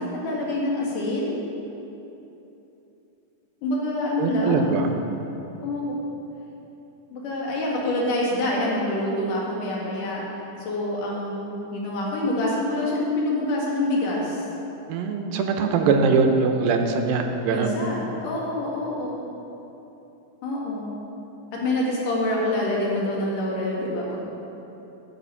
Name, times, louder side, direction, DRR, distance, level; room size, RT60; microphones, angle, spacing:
voice 1, 0.0-1.3 3.6-4.8 5.6-5.8 7.1-10.2 10.6-14.4 17.5-19.2 20.4-20.9 21.5-24.2, left 1 dB, 65° left, -3 dB, 3.3 m, -26 dB
voice 2, 4.2-5.0 14.9-17.7, right 4 dB, 80° right, 4 dB, 2.5 m, -22 dB
14.5 x 6.6 x 5.6 m, 3.0 s
omnidirectional pair, 4.1 m